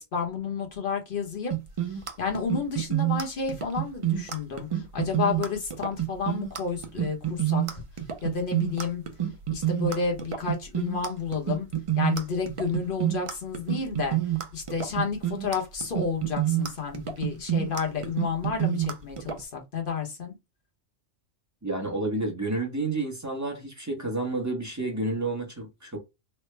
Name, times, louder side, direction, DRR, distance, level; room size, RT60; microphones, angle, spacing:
voice 1, 0.0-1.5 1.9-7.8 8.2-9.0 9.5-11.7 12.0-14.2 14.5-20.3, left 5 dB, 50° left, 1.0 m, -31 dB
sound 1, 1.5-19.4, right 12 dB, 55° right, 0.3 m, -28 dB
voice 2, 21.6-26.0, right 2 dB, 20° right, 0.7 m, -30 dB
3.2 x 2.0 x 3.1 m
omnidirectional pair, 1.2 m